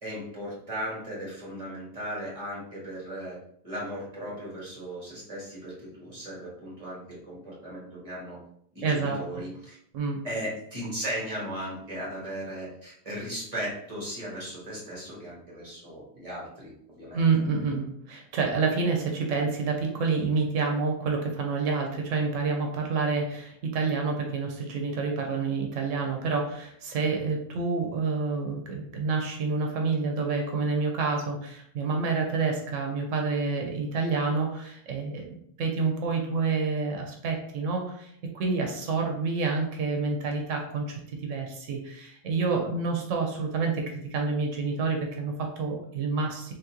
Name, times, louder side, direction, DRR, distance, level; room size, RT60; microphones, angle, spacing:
voice 1, 0.0-3.4 3.6-8.4 8.7-9.8 10.2-17.2, equal, 30° right, -5 dB, 1.6 m, -37 dB
voice 2, 8.8-9.2 9.9-10.2 17.1-40.8 41.2-46.5, right 4 dB, 90° right, 2 dB, 1.1 m, -28 dB
3.7 x 3.5 x 2.8 m, 0.70 s
omnidirectional pair, 1.3 m